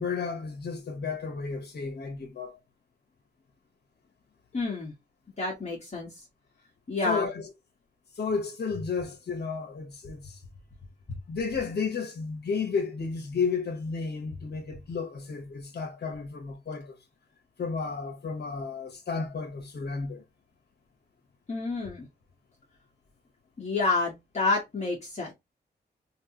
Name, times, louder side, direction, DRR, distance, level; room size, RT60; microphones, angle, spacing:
voice 1, 0.0-2.6 7.0-7.5 8.2-10.3 11.3-17.0 17.6-20.2, left 5 dB, 65° left, 1.2 m, -32 dB
voice 2, 4.5-4.9 5.4-6.1 6.9-7.3 21.5-22.1 23.6-25.3, left 3 dB, 40° left, 1.4 m, -29 dB
3.2 x 2.8 x 3.0 m
wide cardioid pair, 100°, 18 cm